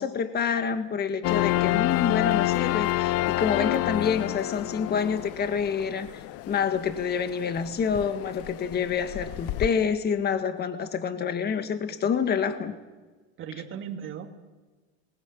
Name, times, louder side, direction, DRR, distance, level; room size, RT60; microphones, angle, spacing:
voice 1, 0.0-12.8, left 6 dB, 30° left, 8 dB, 1.8 m, -27 dB
sound 1, 1.2-9.7, left 17 dB, 45° left, 0.6 m, -28 dB
voice 2, 9.2-9.6 11.9-12.0 13.4-14.3, right 8 dB, 40° right, 4 dB, 2.2 m, -39 dB
20.5 x 18.0 x 8.6 m, 1.3 s
supercardioid pair, 110°, 33 cm